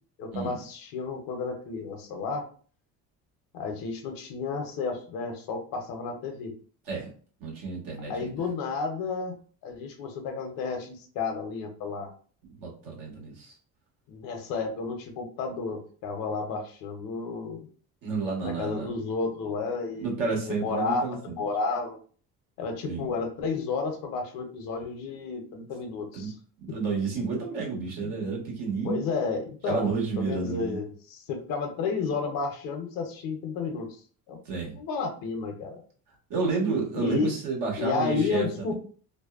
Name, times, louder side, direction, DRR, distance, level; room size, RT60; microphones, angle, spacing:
voice 1, 0.2-2.4 3.5-6.5 8.1-9.4 9.6-12.1 14.1-17.7 18.4-21.0 21.4-22.0 22.6-26.3 26.7-26.8 28.0-28.2 28.8-33.9 34.3-34.4 34.8-35.8 36.9-37.3 37.8-38.7, left 4 dB, 70° left, 4 dB, 0.7 m, -32 dB
voice 2, 7.4-8.3 12.5-13.6 18.0-18.9 20.0-21.4 22.8-23.1 26.1-26.3 26.7-29.0 29.7-30.8 34.4-34.8 36.3-38.7, right 4 dB, 70° right, -2 dB, 1.3 m, -30 dB
2.6 x 2.1 x 2.4 m, 0.43 s
cardioid pair, 110°, 35 cm